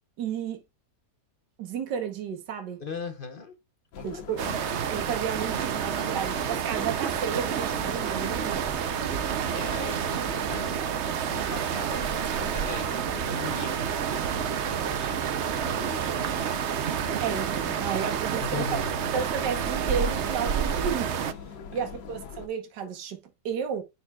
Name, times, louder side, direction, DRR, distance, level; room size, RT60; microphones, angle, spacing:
voice 1, 0.2-0.6 1.6-2.8 4.0-4.4 4.9-8.6 9.0-9.2 17.2-18.6 19.1-21.1 21.7-23.8, right 7 dB, 75° right, 1.7 m, -32 dB
voice 2, 2.8-3.6 4.0-4.5 9.5-10.9 11.3-13.8 15.0-16.1 18.4-19.1 21.7-21.9, left 4 dB, 40° left, 0.9 m, -39 dB
sound 1, 3.9-22.5, left 6 dB, 80° left, 1.6 m, -43 dB
sound 2, 4.4-21.3, right 8 dB, 60° right, 0.7 m, -29 dB
10.0 x 4.3 x 2.3 m
omnidirectional pair, 1.9 m